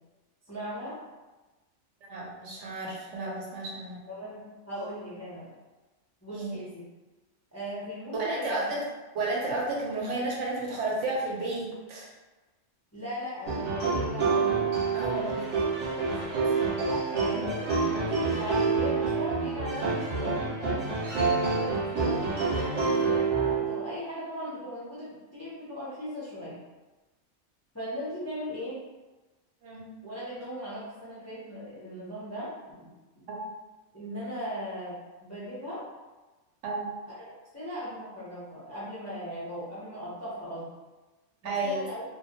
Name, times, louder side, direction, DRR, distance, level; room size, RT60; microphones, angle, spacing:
voice 1, 0.5-1.0 4.1-5.5 6.2-6.8 7.5-8.7 12.9-14.6 16.0-16.4 17.1-22.4 22.8-26.6 27.7-28.8 30.0-32.9 33.9-35.8 37.1-37.2 37.5-40.7 41.4-42.0, equal, 25° left, -10 dB, 0.4 m, -38 dB
voice 2, 2.1-4.1 6.3-6.6 8.1-8.8 9.1-12.1 14.9-15.6 17.3-17.5 29.6-29.9 33.3-33.5 36.6-36.9 41.4-41.8, right 2 dB, 80° right, -3 dB, 0.9 m, -32 dB
sound 1, 13.5-23.9, right 4 dB, 40° right, 0.8 m, -27 dB
2.2 x 2.1 x 2.7 m, 1.2 s
omnidirectional pair, 1.2 m